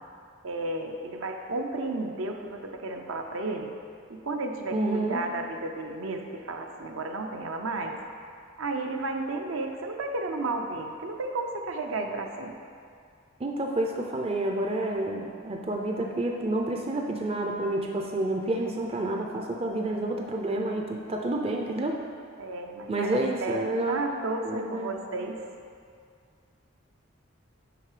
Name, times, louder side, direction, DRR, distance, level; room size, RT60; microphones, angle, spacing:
voice 1, 0.4-3.7 4.1-8.0 8.6-12.6 22.4-25.5, right 2 dB, 70° right, 3 dB, 0.7 m, -33 dB
voice 2, 4.7-5.3 13.4-22.0 22.9-24.0 24.4-24.9, right 1 dB, 25° right, 1 dB, 0.5 m, -29 dB
7.7 x 5.4 x 5.0 m, 2.3 s
head